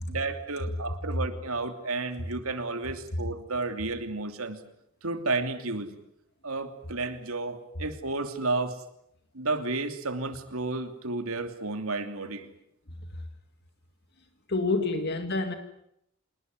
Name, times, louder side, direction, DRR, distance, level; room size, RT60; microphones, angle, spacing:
voice 1, 0.1-4.6 5.0-5.9 6.4-8.8 9.3-12.5 14.8-15.0, right 3 dB, 80° right, 7 dB, 3.0 m, -32 dB
voice 2, 14.5-15.5, left 3 dB, 50° left, 7 dB, 2.1 m, -27 dB
27.5 x 20.0 x 9.5 m, 0.77 s
head